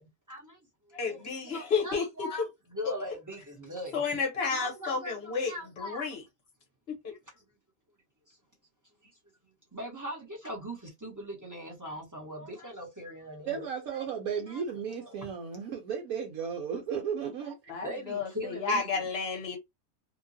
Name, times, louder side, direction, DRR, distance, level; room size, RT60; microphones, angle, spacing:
voice 1, 0.3-0.6 1.1-2.4 2.7-4.0 4.4-6.1 9.7-13.6 14.4-15.2 17.8-19.0, equal, 15° right, 0.9 m, -40 dB
voice 2, 0.9-2.4 3.9-6.2 6.9-7.1 17.7-19.6, left 5 dB, 50° left, 1.2 m, -31 dB
voice 3, 13.5-17.7, right 7 dB, 85° right, 1.1 m, -34 dB
2.9 x 2.3 x 2.6 m
omnidirectional pair, 1.5 m